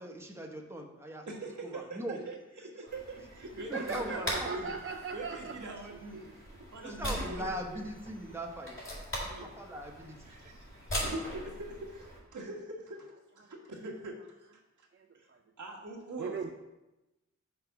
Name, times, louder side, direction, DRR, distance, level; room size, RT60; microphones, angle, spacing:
voice 1, 0.0-1.3 1.6-2.2 3.7-4.8 6.8-8.8 9.4-10.3, right 1 dB, 10° right, 1 dB, 0.9 m, -40 dB
voice 2, 1.3-4.7 5.1-6.3 6.7-7.5 7.7-7.8 9.3-9.5 10.3-14.9 15.1-15.3 15.6-16.5, right 2 dB, 85° right, -1 dB, 1.4 m, -43 dB
sound 1, 2.9-12.2, equal, 45° left, 2.4 m, -41 dB
voice 3, 3.7-5.6 6.2-6.4 14.9-15.4 16.2-16.5, right 5 dB, 45° right, 3 dB, 0.4 m, -38 dB
5.9 x 4.8 x 5.7 m, 1.0 s
wide cardioid pair, 110°, 29 cm